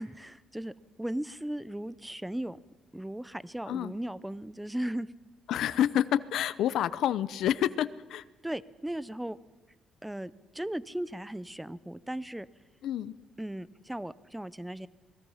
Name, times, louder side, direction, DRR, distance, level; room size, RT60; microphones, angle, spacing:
voice 1, 0.0-2.6 2.9-5.1 8.4-9.4 10.0-12.5 13.4-14.9, right 1 dB, 5° right, 18 dB, 0.6 m, -37 dB
voice 2, 5.5-8.2 12.8-13.1, left 11 dB, 75° left, 16 dB, 0.7 m, -28 dB
27.5 x 20.5 x 5.7 m, 1.2 s
cardioid pair, 145°, 0 cm